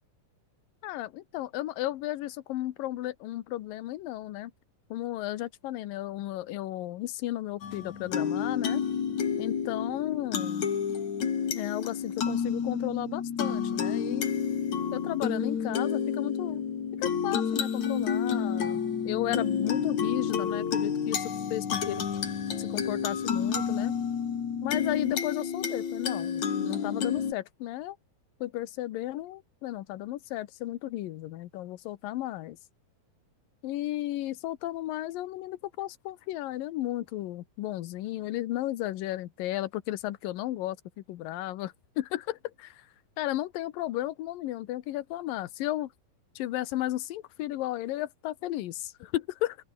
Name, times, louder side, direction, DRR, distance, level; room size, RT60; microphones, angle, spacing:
voice 1, 0.8-4.5 4.9-8.8 9.4-10.7 11.5-14.3 14.9-16.6 17.0-22.0 22.6-23.9 24.6-27.9 28.4-32.6 33.6-42.9 43.2-45.9 46.4-49.6, left 15 dB, 75° left, 2.7 m, -34 dB
sound 1, 7.6-27.3, left 7 dB, 55° left, 4.0 m, -30 dB
open air
omnidirectional pair, 4.1 m